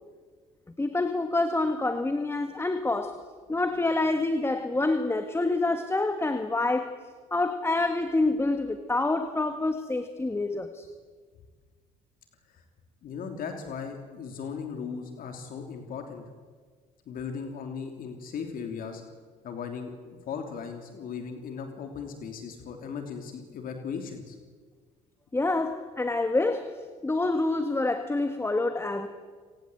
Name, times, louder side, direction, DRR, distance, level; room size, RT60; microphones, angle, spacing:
voice 1, 0.8-3.2 3.5-7.0 7.3-10.9 25.3-29.1, left 2 dB, 15° left, 8 dB, 1.6 m, -27 dB
voice 2, 13.0-16.2 17.1-19.0 19.4-24.4, left 6 dB, 60° left, 5 dB, 3.1 m, -37 dB
29.5 x 18.5 x 8.1 m, 1.5 s
supercardioid pair, 80°, 17 cm